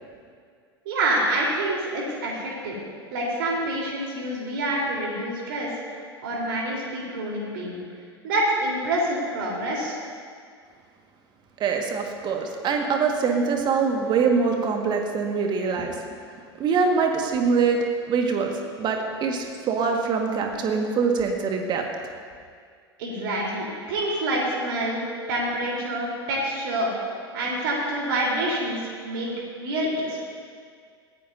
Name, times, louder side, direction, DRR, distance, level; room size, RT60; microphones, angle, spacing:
voice 1, 0.9-2.8 3.1-5.7 6.2-7.8 8.2-10.0 23.0-25.0 25.3-26.9 27.3-29.3 29.6-30.3, right 1 dB, 55° right, -3 dB, 3.9 m, -27 dB
voice 2, 11.6-15.9 16.6-18.5 18.8-21.8, right 5 dB, 35° right, 3 dB, 1.7 m, -24 dB
19.5 x 15.0 x 2.7 m, 2.1 s
figure-of-eight pair, 85°, 14 cm